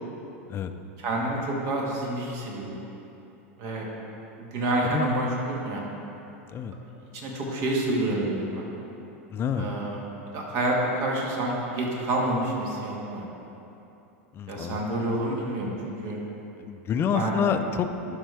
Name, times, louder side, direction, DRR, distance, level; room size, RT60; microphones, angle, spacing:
voice 1, 1.0-2.8 3.6-3.9 4.4-5.8 7.1-8.7 9.5-10.0 10.3-13.3 14.5-16.2 17.1-17.3, right 1 dB, 55° right, -2 dB, 1.8 m, -28 dB
voice 2, 9.3-9.7 14.3-14.8 16.6-18.2, left 7 dB, 30° left, 8 dB, 0.5 m, -28 dB
11.5 x 5.3 x 3.5 m, 2.9 s
hypercardioid pair, 105°, 7 cm